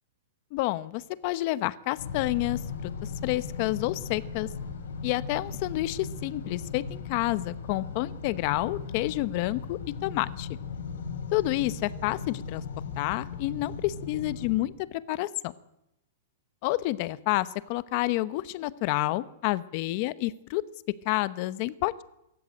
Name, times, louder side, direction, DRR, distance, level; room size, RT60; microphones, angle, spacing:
voice 1, 0.5-4.5 5.0-10.5 11.3-12.6 13.0-15.5 16.6-20.6 21.0-22.0, left 18 dB, 35° left, 16 dB, 0.9 m, -29 dB
sound 1, 2.0-14.6, left 5 dB, 80° left, 5.4 m, -37 dB
22.5 x 13.5 x 8.9 m, 0.84 s
supercardioid pair, 165°, 0 cm